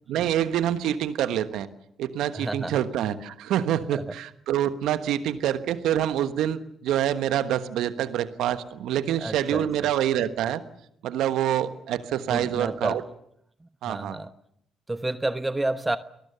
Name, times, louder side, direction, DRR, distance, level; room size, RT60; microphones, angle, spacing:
voice 1, 0.1-1.7 2.0-10.6 11.0-13.0 13.8-14.2, right 11 dB, 75° right, 12 dB, 1.3 m, -26 dB
voice 2, 2.3-2.8 3.9-4.1 9.2-9.7 12.3-13.0 13.6-14.3 14.9-16.0, right 2 dB, 20° right, 12 dB, 1.0 m, -30 dB
30.0 x 20.0 x 6.9 m, 0.73 s
hypercardioid pair, 50°, 0 cm